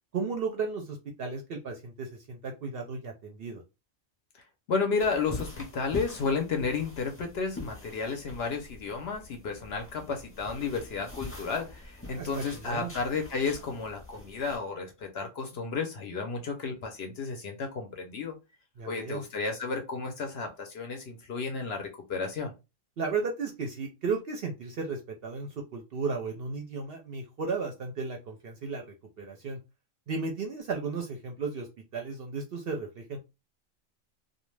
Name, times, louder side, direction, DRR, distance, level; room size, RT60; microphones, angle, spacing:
voice 1, 0.1-3.6 12.1-12.9 18.8-19.2 23.0-28.8 29.2-29.6 30.1-31.7 31.9-33.2, right 4 dB, 65° right, 0.6 m, -34 dB
voice 2, 4.7-18.3 18.9-22.5, left 4 dB, 65° left, 0.7 m, -32 dB
sound 1, 5.0-14.6, left 2 dB, 20° left, 0.4 m, -44 dB
2.4 x 2.1 x 3.1 m
omnidirectional pair, 1.3 m